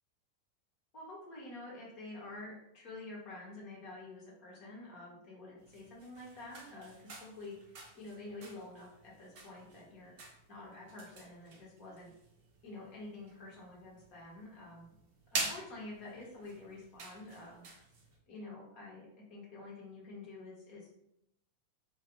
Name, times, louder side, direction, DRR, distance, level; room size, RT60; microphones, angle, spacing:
voice 1, 0.9-10.1 10.5-12.1 12.6-14.9 15.3-17.7 18.3-20.9, left 2 dB, 40° left, -4 dB, 0.9 m, -48 dB
sound 1, 5.6-18.2, right 3 dB, 45° right, 0.6 m, -47 dB
2.5 x 2.4 x 2.8 m, 0.77 s
figure-of-eight pair, 90°, 0 cm